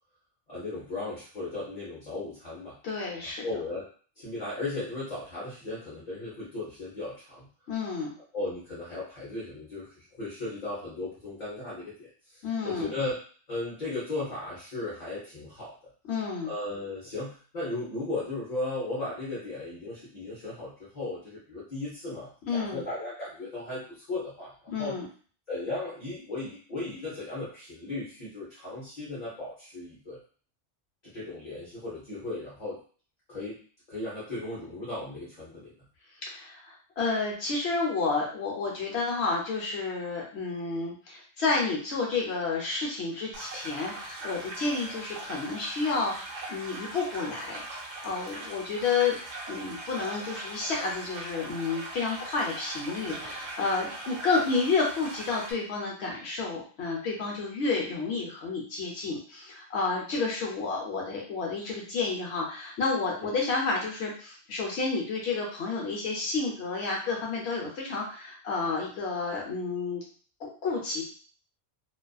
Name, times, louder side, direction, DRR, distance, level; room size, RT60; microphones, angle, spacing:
voice 1, 0.5-2.8 3.2-3.8 4.2-7.5 8.3-13.2 13.5-15.7 16.4-25.0 25.5-30.2 31.0-32.8 33.3-33.6 33.9-35.7 63.2-63.3, left 2 dB, 40° left, -8 dB, 0.9 m, -36 dB
voice 2, 2.8-3.5 7.7-8.1 12.4-12.9 16.0-16.5 22.5-22.8 24.7-25.1 36.2-47.6 48.0-49.2 49.5-70.0 70.4-71.0, left 4 dB, 75° left, -2 dB, 0.9 m, -30 dB
sound 1, 43.3-55.5, right 2 dB, 55° right, 0.5 m, -40 dB
2.4 x 2.4 x 2.2 m, 0.42 s
omnidirectional pair, 1.1 m